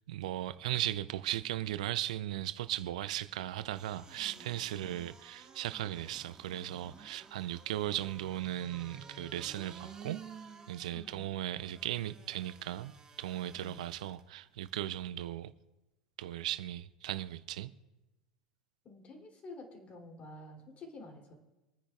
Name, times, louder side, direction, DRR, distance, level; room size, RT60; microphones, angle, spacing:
voice 1, 0.1-10.2 10.7-12.9 13.2-15.5 16.2-17.7, right 13 dB, 65° right, 0.5 m, -37 dB
sound 1, 3.7-14.2 14.7-14.8, right 5 dB, 20° right, 1.8 m, -53 dB
voice 2, 4.2-5.0 10.9-11.2 13.6-13.9 18.8-21.3, left 2 dB, 35° left, 3.1 m, -50 dB
26.0 x 9.9 x 2.4 m
figure-of-eight pair, 85°, 4 cm